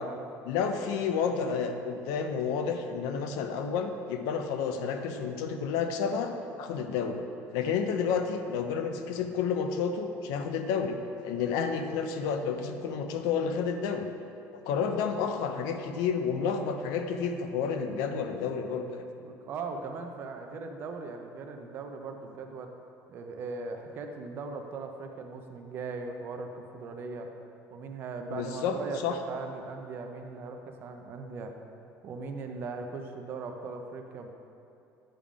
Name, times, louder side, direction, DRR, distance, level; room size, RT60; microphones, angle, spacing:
voice 1, 0.4-6.3 6.6-7.2 7.5-11.0 11.2-14.1 14.7-19.0 28.3-28.8 29.0-29.2, left 6 dB, 70° left, 6 dB, 0.5 m, -30 dB
voice 2, 19.2-22.7 23.1-27.3 27.7-31.5 32.0-34.3, right 4 dB, 35° right, 5 dB, 0.4 m, -39 dB
8.7 x 3.6 x 4.8 m, 2.7 s
cardioid pair, 180°, 6 cm